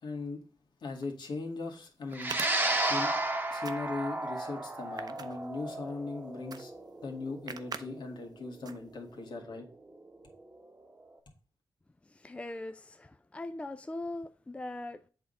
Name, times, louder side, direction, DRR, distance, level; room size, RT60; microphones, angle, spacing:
voice 1, 0.0-0.4 0.8-2.4 2.8-3.1 3.5-6.7 7.0-9.6, left 3 dB, 70° left, 2.0 m, -39 dB
sound 1, 1.0-1.1 2.1-3.3 3.6-4.2 4.8-5.9 6.5-6.6 6.9-7.0 7.5-7.9 8.2-8.4 8.7-9.2, right 5 dB, 55° right, 0.7 m, -42 dB
sound 2, 2.1-10.7, right 2 dB, 20° right, 1.1 m, -34 dB
voice 2, 12.1-15.0, left 2 dB, 15° left, 0.4 m, -40 dB
8.1 x 3.6 x 5.2 m
wide cardioid pair, 100°, 8 cm